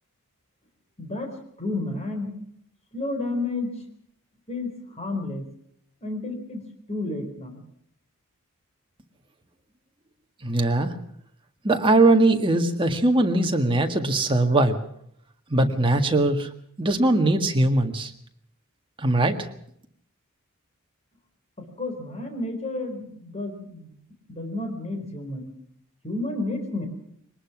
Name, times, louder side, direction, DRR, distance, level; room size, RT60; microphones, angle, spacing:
voice 1, 1.0-1.3 1.6-2.3 2.9-3.9 4.5-5.5 6.0-6.6 6.9-7.6 21.8-24.0 24.3-25.6 26.0-26.9, left 2 dB, 30° left, 4 dB, 4.3 m, -31 dB
voice 2, 10.4-10.9 11.6-14.8 15.5-16.5 16.8-18.1 19.0-19.5, right 2 dB, 25° right, 4 dB, 1.8 m, -21 dB
22.5 x 19.5 x 6.1 m, 0.68 s
head